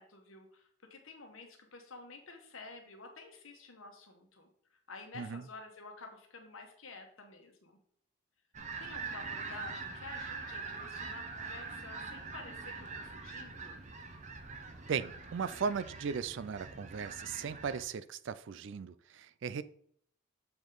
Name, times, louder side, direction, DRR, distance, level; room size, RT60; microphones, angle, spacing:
voice 1, 0.0-7.8 8.8-13.8, left 3 dB, 75° left, 4 dB, 1.3 m, -51 dB
sound 1, 8.5-17.8, right 4 dB, 35° right, 0.7 m, -44 dB
voice 2, 14.9-19.6, right 6 dB, 60° right, 15 dB, 0.4 m, -37 dB
7.1 x 5.0 x 3.9 m, 0.64 s
head